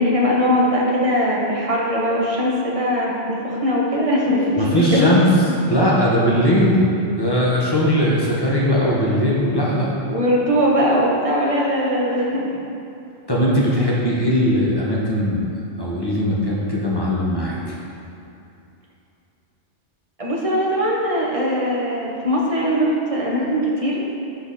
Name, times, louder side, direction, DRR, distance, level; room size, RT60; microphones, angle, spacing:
voice 1, 0.0-5.1 5.4-5.6 10.1-12.6 20.2-24.0, equal, 30° right, -4 dB, 1.3 m, -20 dB
voice 2, 4.6-5.3 5.7-9.9 13.3-15.4 15.8-17.8, equal, 20° left, -5 dB, 1.3 m, -19 dB
11.0 x 4.4 x 4.2 m, 2.8 s
omnidirectional pair, 1.1 m